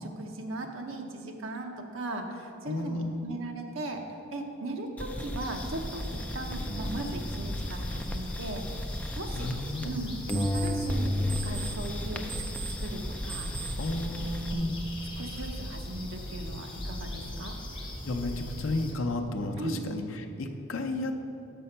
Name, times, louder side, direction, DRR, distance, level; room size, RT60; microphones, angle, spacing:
voice 1, 0.0-4.0 4.3-6.0 6.3-8.6 9.2-9.5 9.8-11.1 11.4-12.2 12.8-13.5 14.5-14.7 15.2-17.6 19.6-19.9, right 2 dB, 70° right, 3 dB, 0.8 m, -38 dB
voice 2, 2.6-3.4 9.3-9.9 13.8-14.7 18.0-21.1, left 2 dB, 70° left, 4 dB, 0.6 m, -32 dB
sound 1, 5.0-10.0 10.3-14.5, left 1 dB, 5° left, 0.3 m, -34 dB
sound 2, 5.4-18.9, left 1 dB, 25° left, 1.1 m, -39 dB
sound 3, 10.0-16.5, right 7 dB, 35° right, 0.9 m, -45 dB
6.8 x 5.5 x 5.5 m, 2.7 s
head